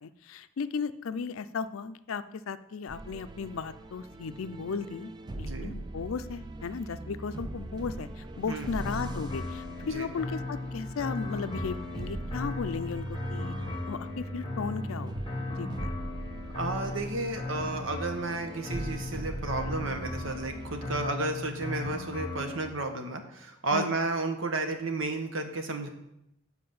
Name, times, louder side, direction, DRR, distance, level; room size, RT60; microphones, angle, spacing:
voice 1, 0.0-5.1 5.4-13.5 13.8-15.9 23.7-23.9, left 5 dB, 85° left, 13 dB, 0.5 m, -36 dB
sound 1, 2.9-21.1, right 1 dB, 20° right, 0.4 m, -40 dB
voice 2, 5.4-5.7 8.5-8.7 9.9-10.1 16.5-25.9, right 3 dB, 75° right, 5 dB, 1.1 m, -32 dB
sound 2, 8.8-22.7, left 2 dB, 25° left, 1.0 m, -37 dB
7.6 x 4.6 x 7.0 m, 0.83 s
head